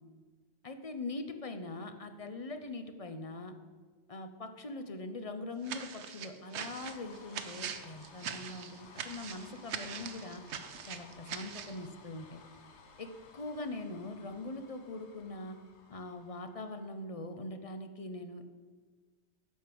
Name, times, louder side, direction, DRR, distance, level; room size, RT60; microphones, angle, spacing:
voice 1, 0.6-3.5 4.1-10.4 10.9-12.4 13.0-15.6 15.9-18.4, left 2 dB, 40° left, 7 dB, 0.6 m, -42 dB
sound 1, 5.6-11.8, right 7 dB, 75° right, 1.0 m, -42 dB
sound 2, 6.8-17.1, left 4 dB, 80° left, 1.3 m, -57 dB
11.0 x 4.8 x 7.6 m, 1.5 s
omnidirectional pair, 1.2 m